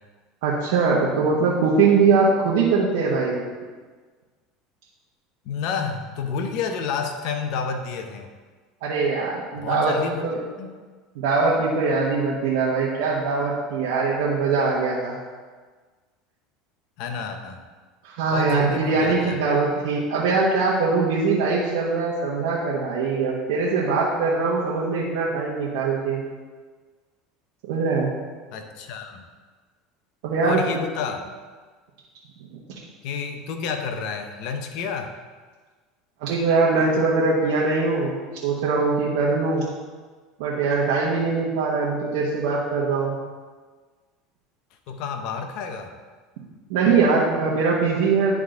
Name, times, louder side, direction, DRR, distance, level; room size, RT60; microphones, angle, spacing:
voice 1, 0.4-3.4 8.8-9.9 10.2-10.4 11.1-15.2 18.0-26.2 27.6-28.1 30.2-30.6 36.2-38.1 38.4-39.6 40.4-43.2 46.7-48.4, right 4 dB, 80° right, -6 dB, 1.2 m, -22 dB
voice 2, 5.4-8.3 9.6-10.3 10.6-10.7 17.0-17.6 18.3-19.4 28.5-29.3 30.4-31.3 33.0-35.2 44.9-45.9, left 6 dB, 65° left, 6 dB, 0.9 m, -30 dB
10.5 x 3.8 x 3.8 m, 1.4 s
supercardioid pair, 105°, 0 cm